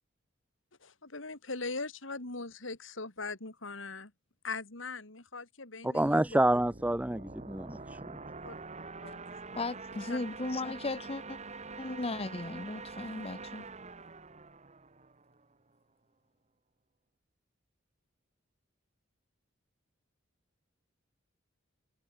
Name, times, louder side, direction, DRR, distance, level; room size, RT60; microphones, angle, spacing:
voice 1, 0.8-4.1 4.4-6.4 8.4-8.5 9.0-9.4 10.1-10.2, left 3 dB, 70° left, 3.1 m, -40 dB
voice 2, 5.8-8.2, right 1 dB, 5° right, 0.7 m, -28 dB
sound 1, 6.2-15.5, right 4 dB, 35° right, 2.1 m, -45 dB
voice 3, 9.6-11.4 11.8-13.6, left 3 dB, 30° left, 0.8 m, -36 dB
head